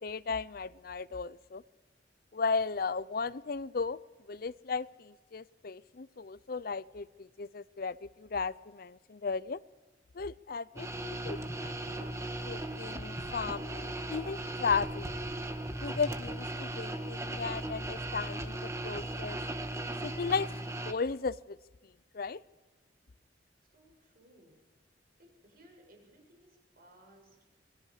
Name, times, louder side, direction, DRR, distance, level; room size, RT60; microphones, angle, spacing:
voice 1, 0.0-1.6 2.3-4.0 4.3-9.6 10.1-12.1 12.4-15.1 15.8-19.4 20.0-20.5 20.8-21.6 22.1-22.4, left 5 dB, 55° left, 18 dB, 0.6 m, -35 dB
sound 1, 10.8-20.9, right 1 dB, 15° right, 1.5 m, -37 dB
voice 2, 23.7-24.6 25.2-27.4, right 1 dB, 55° right, 2 dB, 7.2 m, -61 dB
28.5 x 21.5 x 4.9 m, 1.2 s
head